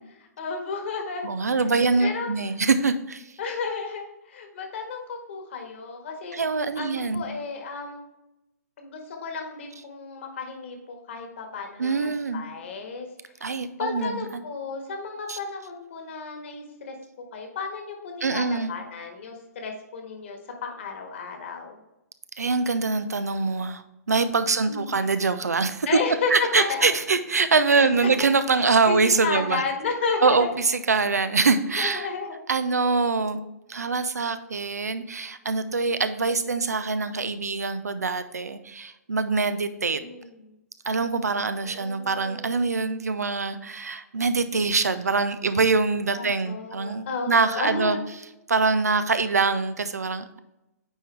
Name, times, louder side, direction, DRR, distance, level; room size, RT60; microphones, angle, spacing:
voice 1, 0.2-1.3 2.0-2.3 3.4-6.4 6.8-8.0 8.8-13.1 13.4-16.9 17.3-21.8 24.7-25.0 25.9-26.9 27.7-28.3 28.9-29.0 29.2-30.5 31.8-32.4 39.6-40.6 41.3-42.9 46.1-48.0, left 4 dB, 45° left, 4 dB, 1.6 m, -33 dB
voice 2, 1.2-3.2 6.3-7.2 11.8-12.4 13.4-14.4 15.3-15.4 18.2-18.7 22.4-23.8 24.1-25.9 26.3-29.6 30.2-32.1 32.5-33.4 33.7-40.0 40.9-48.0 48.5-50.4, right 4 dB, 70° right, 11 dB, 0.6 m, -24 dB
9.0 x 4.4 x 3.3 m, 0.93 s
figure-of-eight pair, 125°, 9 cm